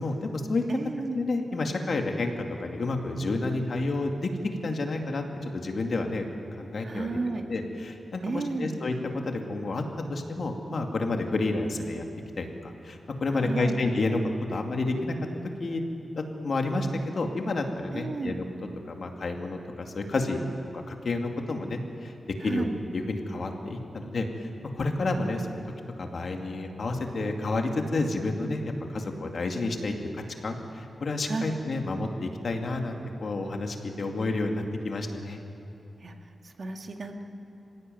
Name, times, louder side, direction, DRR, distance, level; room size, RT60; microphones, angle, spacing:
voice 1, 0.0-0.6 1.1-4.3 4.6-6.2 6.6-7.2 7.5-8.9 9.3-9.8 10.1-12.1 12.4-15.1 15.6-15.8 16.2-16.9 17.1-18.4 18.9-20.4 20.9-22.1 22.4-24.5 24.7-25.6 26.0-35.4, left 2 dB, 60° left, 3 dB, 2.4 m, -30 dB
voice 2, 0.7-1.2 6.8-7.5 8.2-8.7 13.3-13.8 17.9-18.4 22.4-22.7 31.3-31.6 36.0-36.1 36.4-37.2, right 3 dB, 50° right, 3 dB, 2.0 m, -32 dB
26.0 x 16.5 x 9.3 m, 2.8 s
wide cardioid pair, 95°, 0 cm